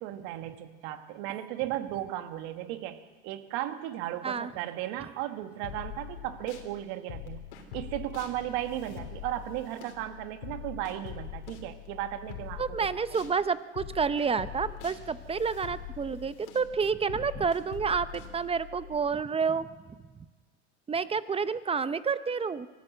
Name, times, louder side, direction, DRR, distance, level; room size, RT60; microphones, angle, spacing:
voice 1, 0.0-7.4 7.7-12.9, right 13 dB, 70° right, 9 dB, 1.7 m, -35 dB
sound 1, 5.6-6.7 7.1-13.3 13.8-19.0, left 11 dB, 75° left, 3.3 m, -43 dB
voice 2, 12.6-19.7 20.9-22.7, right 5 dB, 15° right, 15 dB, 0.6 m, -29 dB
23.5 x 14.0 x 7.8 m, 1.4 s
supercardioid pair, 110°, 34 cm